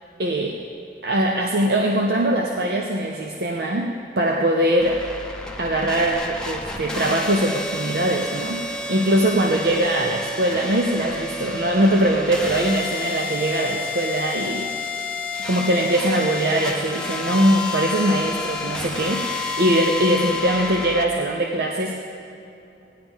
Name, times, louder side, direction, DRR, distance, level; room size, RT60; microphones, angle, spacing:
voice 1, 0.2-0.6 1.0-5.0 5.6-14.7 15.4-21.9, right 1 dB, 60° right, 0 dB, 0.7 m, -21 dB
sound 1, 4.8-21.0, left 3 dB, 5° left, 0.7 m, -30 dB
17.5 x 10.5 x 3.6 m, 2.8 s
head